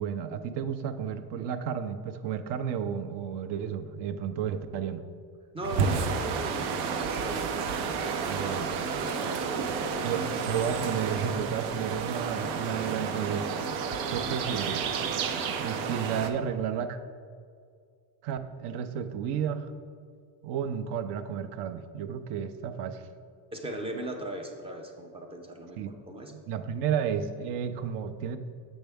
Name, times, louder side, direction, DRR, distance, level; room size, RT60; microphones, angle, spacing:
voice 1, 0.0-5.0 8.3-8.7 10.0-13.5 14.1-14.9 15.6-17.0 18.2-19.7 20.4-23.1 25.8-25.9 26.3-28.4, right 8 dB, 60° right, 10 dB, 0.6 m, -32 dB
voice 2, 5.5-10.7 23.5-26.3, right 1 dB, 15° right, 3 dB, 0.4 m, -39 dB
sound 1, 5.6-16.3, right 5 dB, 90° right, 0.8 m, -31 dB
7.9 x 6.3 x 3.4 m, 2.2 s
cardioid pair, 165°, 46 cm